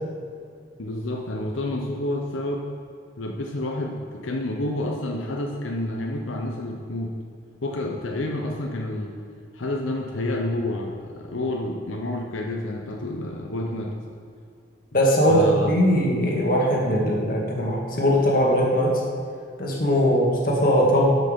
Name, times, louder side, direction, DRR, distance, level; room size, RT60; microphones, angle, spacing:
voice 1, 0.8-2.7 3.2-7.2 7.6-9.2 9.5-14.0 15.3-15.7, left 1 dB, 90° left, 1 dB, 0.9 m, -29 dB
voice 2, 14.9-19.0 19.6-21.1, equal, 45° left, -2 dB, 2.0 m, -20 dB
12.5 x 6.2 x 5.2 m, 2.2 s
head